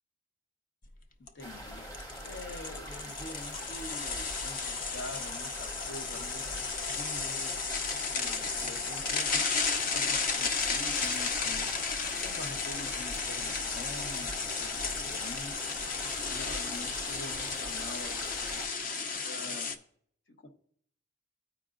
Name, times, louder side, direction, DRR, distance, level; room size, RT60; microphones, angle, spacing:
sound 1, 0.9-1.0 1.3-1.4 1.9-19.8, left 5 dB, 45° left, 0.5 m, -33 dB
voice 1, 1.3-9.6 9.9-15.7 16.2-19.7 20.3-20.5, left 2 dB, 60° left, 5 dB, 1.0 m, -46 dB
sound 2, 1.4-18.7, equal, 20° left, 1.0 m, -43 dB
14.0 x 4.8 x 2.5 m, 0.64 s
head